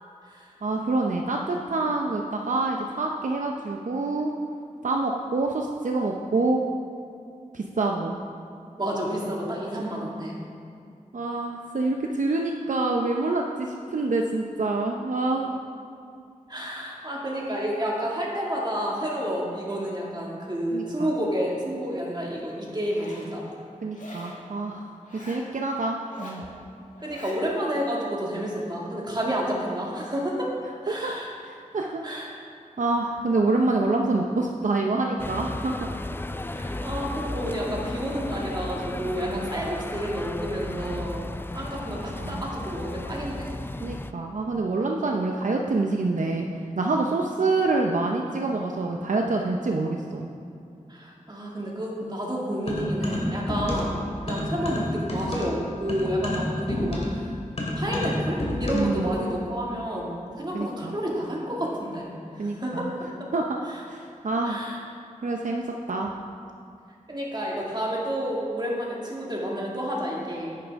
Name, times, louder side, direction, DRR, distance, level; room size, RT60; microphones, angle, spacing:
voice 1, 0.6-4.3 4.8-6.6 7.5-8.2 11.1-15.6 20.7-21.1 23.8-24.8 25.1-26.4 30.9-31.1 31.4-32.0 32.8-35.8 39.2-39.7 41.9-42.5 43.8-46.5 46.8-50.3 58.7-59.1 60.5-61.0 62.4-62.9 63.3-63.6 63.9-64.7 65.2-65.6 65.9-66.1, right 3 dB, 70° right, 1 dB, 0.6 m, -26 dB
voice 2, 8.8-10.4 16.5-23.5 27.0-30.5 30.8-31.3 32.0-32.2 36.5-41.2 41.5-43.5 50.9-57.0 57.7-60.1 60.4-62.9 63.2-63.3 64.4-64.8 67.1-70.6, equal, 30° right, -4 dB, 2.2 m, -30 dB
Zipper (clothing), 22.7-23.3 23.9-24.4 25.0-25.5 26.0-26.5 26.9-27.4, left 1 dB, 65° left, 1.7 m, -44 dB
sound 1, 35.2-44.1, left 2 dB, 15° left, 0.3 m, -34 dB
sound 2, 52.7-54.0 54.3-59.0, left 1 dB, 50° left, 2.3 m, -29 dB
10.0 x 9.9 x 3.6 m, 2.5 s
wide cardioid pair, 65°, 14 cm